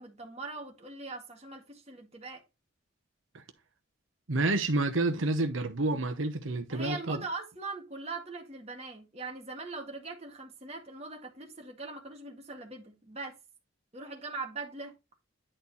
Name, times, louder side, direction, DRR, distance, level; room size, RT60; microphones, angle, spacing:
voice 1, 0.0-2.4 6.7-13.4 13.9-14.9, right 3 dB, 30° right, 1.9 m, -41 dB
voice 2, 4.3-7.2, right 2 dB, 80° right, 1.1 m, -29 dB
10.0 x 4.4 x 4.1 m
head